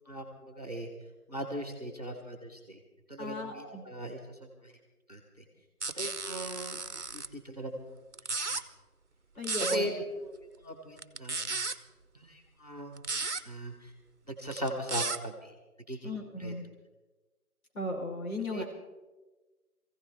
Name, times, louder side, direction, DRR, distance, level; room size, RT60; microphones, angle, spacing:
voice 1, 0.1-0.9 1.3-2.8 3.1-4.2 4.6-4.7 5.1-5.2 5.9-6.8 7.1-7.9 8.5-8.6 9.7-11.6 12.1-13.1 13.4-13.9 14.3-15.5 15.9-16.1 16.4-16.5 18.5-18.6, equal, 25° right, 3 dB, 1.2 m, -39 dB
voice 2, 3.2-3.8 9.4-9.9 16.0-16.6 17.7-18.6, left 1 dB, 65° left, -1 dB, 4.3 m, -35 dB
sound 1, 5.8-7.3 8.1-8.6 9.4-9.8 11.0-11.8 13.0-13.4 14.5-15.2, right 3 dB, 50° right, 0.8 m, -34 dB
21.0 x 15.5 x 3.5 m, 1.2 s
figure-of-eight pair, 180°, 45 cm